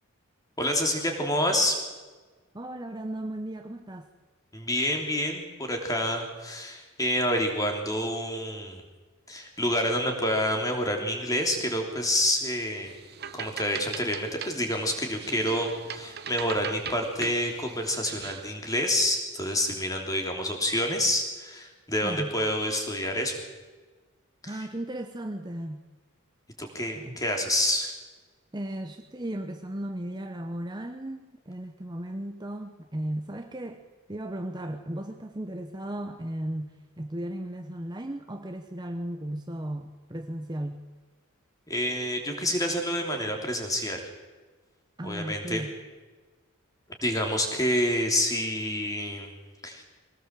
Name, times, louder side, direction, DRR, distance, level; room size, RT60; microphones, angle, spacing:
voice 1, 0.6-1.8 4.5-8.8 9.3-12.9 13.3-23.4 26.6-27.9 41.7-44.0 45.0-45.6 47.0-49.3 49.6-49.8, left 1 dB, 15° left, 3 dB, 3.2 m, -28 dB
voice 2, 2.5-4.1 22.0-22.3 24.5-25.8 26.9-27.2 28.5-40.8 45.0-45.7, right 1 dB, 20° right, 5 dB, 0.9 m, -36 dB
sound 1, 12.9-18.6, right 7 dB, 45° right, 1.0 m, -40 dB
22.0 x 18.0 x 7.5 m, 1.3 s
head